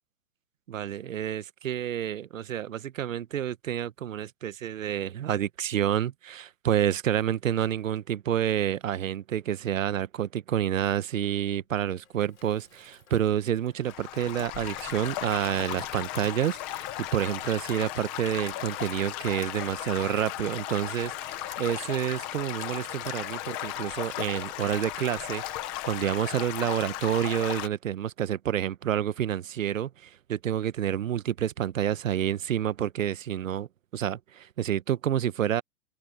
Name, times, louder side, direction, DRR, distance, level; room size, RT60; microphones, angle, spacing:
voice 1, 0.7-25.4 25.8-35.6, right 10 dB, 75° right, 1.1 m, -29 dB
Water tap faucet / Sink (filling or washing), 11.5-26.4 26.7-27.0, left 8 dB, 85° left, 3.6 m, -51 dB
Stream / Gurgling / Trickle dribble, 13.8-27.7, left 14 dB, 10° left, 0.7 m, -36 dB
hypercardioid pair, 175°, 40 cm